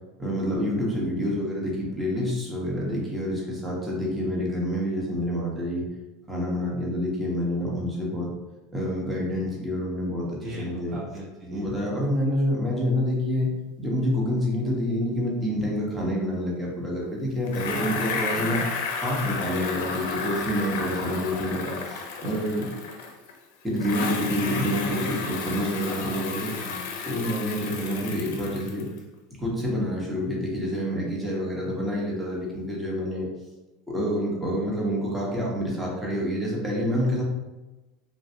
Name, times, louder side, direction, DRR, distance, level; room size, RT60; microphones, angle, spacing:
voice 1, 0.2-5.8 6.3-8.3 8.7-11.0 11.5-13.5 13.8-18.6 19.0-22.7 23.6-26.6 27.0-28.9 29.4-33.3 33.9-37.2, equal, 10° right, -4 dB, 1.0 m, -27 dB
voice 2, 10.4-11.8 17.6-18.7 25.8-26.9, right 1 dB, 35° right, -4 dB, 0.6 m, -38 dB
Bicycle, 17.5-23.3 23.8-29.0, left 5 dB, 80° left, 0.5 m, -32 dB
3.2 x 2.4 x 2.8 m, 1.1 s
supercardioid pair, 110°, 0 cm